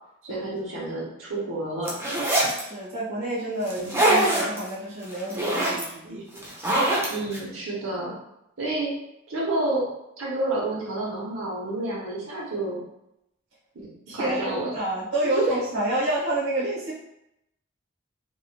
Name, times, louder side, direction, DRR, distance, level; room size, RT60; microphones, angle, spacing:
voice 1, 0.2-1.9 3.7-3.9 6.0-6.4 7.1-8.1 8.6-8.9 9.3-9.8 10.2-12.8 13.7-14.7 15.3-15.5, right 2 dB, 85° right, -4 dB, 1.0 m, -29 dB
sound 1, 1.8-2.6 3.7-4.6 5.0-5.8 6.4-7.4, right 1 dB, 15° right, 0.5 m, -23 dB
voice 2, 2.5-6.2 14.1-16.9, right 1 dB, 60° right, -8 dB, 1.1 m, -29 dB
3.3 x 2.5 x 2.3 m, 0.84 s
head